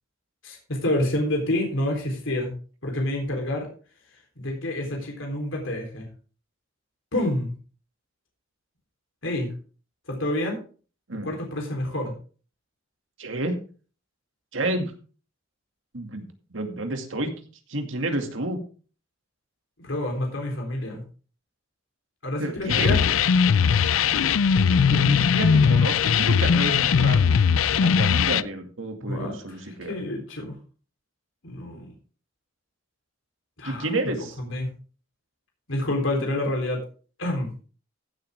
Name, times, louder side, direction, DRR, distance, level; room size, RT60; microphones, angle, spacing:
voice 1, 0.4-2.6 2.8-3.7 4.4-6.1 7.1-7.5 9.2-9.5 10.1-10.6 11.2-12.1 19.8-21.0 22.2-23.0 29.0-30.6 31.4-31.9 33.6-33.9 34.4-34.7 35.7-36.8 37.2-37.5, left 1 dB, 70° left, 1 dB, 3.7 m, -28 dB
voice 2, 13.2-13.6 14.5-14.9 15.9-16.3 16.5-17.3 17.7-18.6 22.4-23.0 24.9-27.2 27.7-29.9 33.6-34.4, right 2 dB, 70° right, 5 dB, 2.3 m, -30 dB
sound 1, 22.7-28.4, left 6 dB, 85° left, 0.5 m, -19 dB
15.5 x 7.7 x 3.5 m, 0.38 s
head